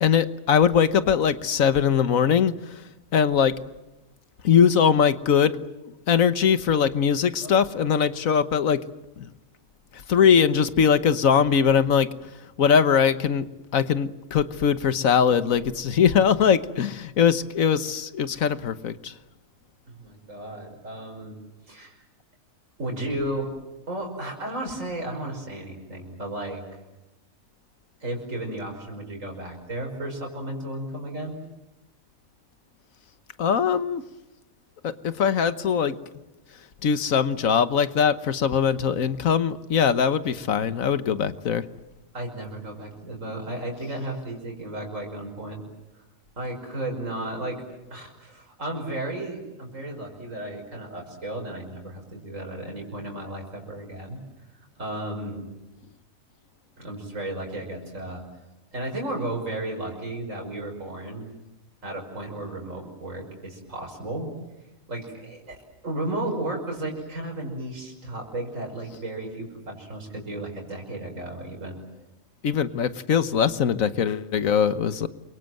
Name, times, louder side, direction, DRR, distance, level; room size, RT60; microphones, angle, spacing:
voice 1, 0.0-2.8 3.1-3.6 4.4-5.6 6.1-8.9 9.2-9.3 10.1-12.1 12.6-13.4 13.7-19.1 33.4-34.0 34.8-35.9 36.8-41.6 72.4-75.1, left 7 dB, 90° left, 12 dB, 1.5 m, -21 dB
voice 2, 7.4-8.0 19.9-21.4 21.7-22.0 22.8-23.5 23.9-26.6 28.0-31.4 42.1-45.6 46.4-54.2 54.8-55.4 56.8-58.2 58.7-61.3 61.8-64.3 64.9-65.6 65.8-71.8, right 1 dB, 70° right, 1 dB, 5.9 m, -34 dB
29.0 x 24.0 x 7.8 m, 0.99 s
omnidirectional pair, 1.4 m